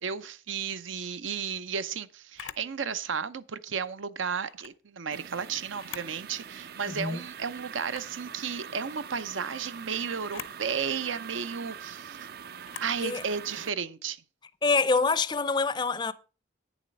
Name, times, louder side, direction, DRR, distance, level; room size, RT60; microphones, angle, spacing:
voice 1, 0.0-12.2 12.8-14.2, right 6 dB, 85° right, 0.7 m, -33 dB
Camera, 2.3-2.7 4.4-4.8 5.7-6.2 6.6-6.7 7.8-8.2 10.2-10.6 12.6-13.0, left 9 dB, 90° left, 0.6 m, -43 dB
sound 1, 5.1-13.7, right 7 dB, 50° right, 0.4 m, -43 dB
voice 2, 14.6-16.1, left 4 dB, 25° left, 0.4 m, -25 dB
9.2 x 7.2 x 5.2 m
head